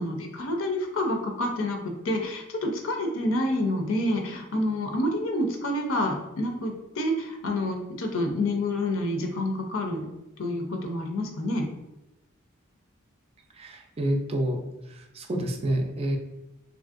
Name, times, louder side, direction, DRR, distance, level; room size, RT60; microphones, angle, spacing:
voice 1, 0.0-10.1 10.4-11.6, left 1 dB, 65° left, 3 dB, 0.5 m, -28 dB
voice 2, 13.6-14.6 15.2-16.2, right 1 dB, 30° right, 3 dB, 0.3 m, -28 dB
3.1 x 2.5 x 2.4 m, 0.93 s
head